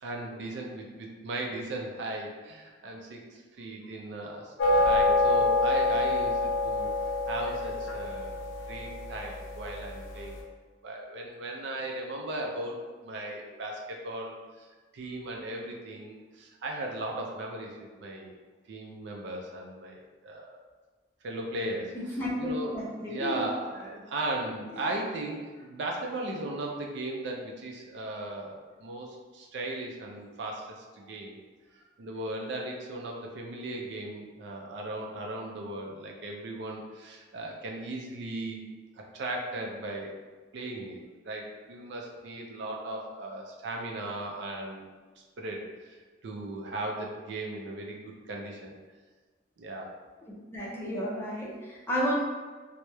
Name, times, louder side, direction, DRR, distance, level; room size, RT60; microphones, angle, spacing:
voice 1, 0.0-6.9 7.3-8.4 8.7-10.4 10.8-12.8 13.0-14.4 14.9-18.3 18.7-20.6 21.2-22.0 22.4-31.4 32.0-38.6 39.0-40.1 40.5-41.0 41.2-44.8 45.4-46.0 46.2-48.7 49.6-50.0, right 1 dB, 65° right, 0 dB, 0.4 m, -37 dB
sound 1, 4.6-10.1, left 2 dB, 85° left, 0.4 m, -27 dB
voice 2, 22.2-23.5 24.8-24.9 50.5-52.1, equal, 15° left, -6 dB, 0.5 m, -32 dB
2.9 x 2.0 x 2.2 m, 1.4 s
head